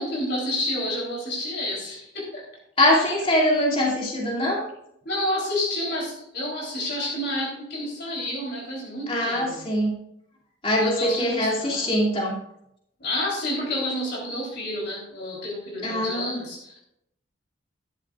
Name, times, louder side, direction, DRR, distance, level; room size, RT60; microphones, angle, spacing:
voice 1, 0.0-2.4 3.0-3.1 5.1-9.7 10.8-12.1 13.0-16.8, left 1 dB, 55° left, -4 dB, 3.6 m, -30 dB
voice 2, 2.8-4.6 9.1-10.0 10.6-12.4 15.8-16.3, left 1 dB, 30° left, -3 dB, 2.6 m, -23 dB
13.0 x 12.0 x 2.5 m, 0.77 s
head